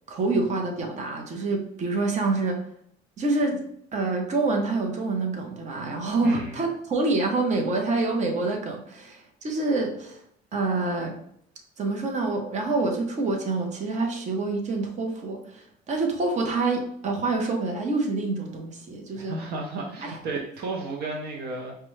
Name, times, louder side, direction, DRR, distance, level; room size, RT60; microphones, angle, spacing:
voice 1, 0.1-2.6 3.2-3.6 3.9-10.2 10.5-11.2 11.8-19.4 20.0-20.2, right 3 dB, 45° right, 2 dB, 0.9 m, -27 dB
voice 2, 6.2-6.6 19.2-21.8, right 3 dB, 75° right, 1 dB, 0.7 m, -33 dB
4.9 x 2.3 x 3.2 m, 0.69 s
cardioid pair, 110°, 17 cm